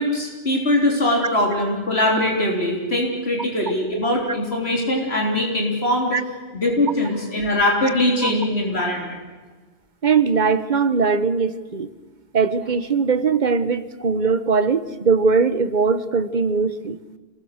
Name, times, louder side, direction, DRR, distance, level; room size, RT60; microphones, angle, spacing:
voice 1, 0.0-6.2 6.5-9.2, left 1 dB, 80° left, 0 dB, 3.9 m, -21 dB
voice 2, 10.0-11.9 12.3-17.0, right 5 dB, 45° right, 13 dB, 1.2 m, -20 dB
27.0 x 20.5 x 6.6 m, 1.3 s
omnidirectional pair, 1.1 m